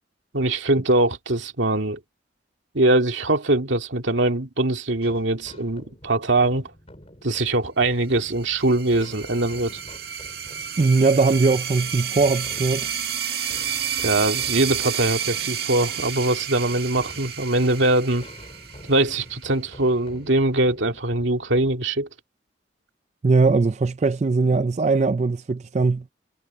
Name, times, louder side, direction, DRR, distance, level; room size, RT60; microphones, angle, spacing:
voice 1, 0.3-2.0 2.7-6.7 7.2-9.8 14.0-18.3 18.9-22.1, right 2 dB, 80° right, 2.3 m, -22 dB
sound 1, 5.0-21.7, left 1 dB, 35° left, 6.0 m, -47 dB
sound 2, 8.2-19.5, right 8 dB, 55° right, 2.1 m, -31 dB
voice 2, 10.8-12.9 23.2-26.0, right 3 dB, 35° right, 0.4 m, -20 dB
head